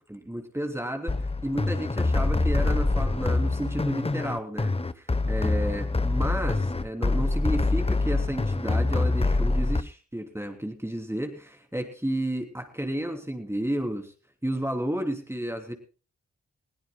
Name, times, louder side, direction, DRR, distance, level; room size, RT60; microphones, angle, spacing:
voice 1, 0.1-1.2 1.4-14.1 14.4-15.7, right 1 dB, 10° right, 3 dB, 3.2 m, -32 dB
sound 1, 1.1-9.8, left 2 dB, 20° left, 0.9 m, -25 dB
20.5 x 16.5 x 2.2 m, 0.36 s
cardioid pair, 45°, 29 cm